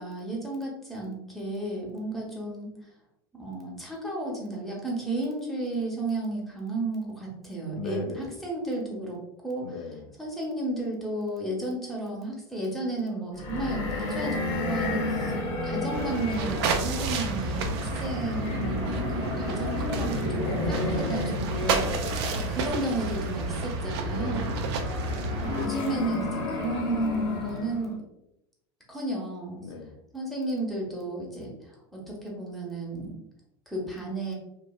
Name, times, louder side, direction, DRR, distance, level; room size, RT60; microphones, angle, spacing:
voice 1, 0.0-2.7 3.3-9.7 10.2-15.3 15.6-21.9 22.4-24.5 25.4-28.0 28.9-29.6 30.1-33.1 33.7-34.4, right 2 dB, ahead, -3 dB, 0.9 m, -33 dB
voice 2, 7.7-8.4 9.6-10.2 21.8-22.3 24.1-24.8 29.6-30.0, left 3 dB, 80° left, 4 dB, 0.4 m, -38 dB
sound 1, 13.3-27.9, left 2 dB, 55° left, 0.9 m, -32 dB
sound 2, 15.9-25.7, right 3 dB, 70° right, 0.4 m, -31 dB
3.0 x 2.3 x 2.2 m, 0.83 s
hypercardioid pair, 100°, 14 cm